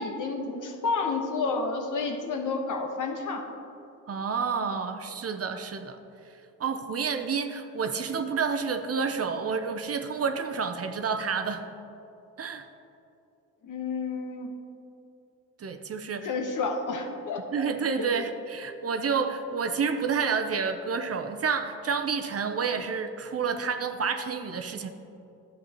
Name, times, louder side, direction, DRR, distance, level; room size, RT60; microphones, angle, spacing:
voice 1, 0.0-3.5 13.6-14.5 16.2-17.7 18.0-18.2, left 4 dB, 60° left, 3 dB, 1.2 m, -30 dB
voice 2, 4.1-6.0 6.6-11.6 12.4-12.7 15.6-16.3 17.5-24.9, right 5 dB, 40° right, 7 dB, 0.7 m, -29 dB
11.0 x 7.3 x 3.0 m, 2.8 s
supercardioid pair, 60°, 35 cm